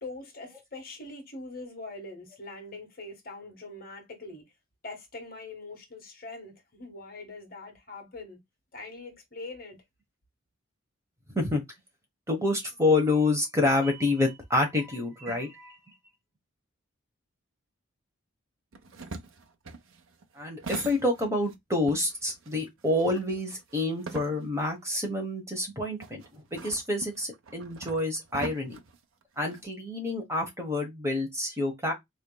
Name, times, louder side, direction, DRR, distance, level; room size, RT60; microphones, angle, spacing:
voice 1, 0.0-4.4 4.8-8.4 8.7-9.8, left 2 dB, 45° left, 1.4 m, -43 dB
voice 2, 12.3-15.8 20.4-28.8 29.4-31.9, left 2 dB, 15° right, 1.0 m, -28 dB
sound 1, 18.7-21.6 21.9-24.7 25.1-25.2 26.0-29.7, right 4 dB, 80° right, 0.7 m, -42 dB
4.2 x 3.2 x 2.2 m
head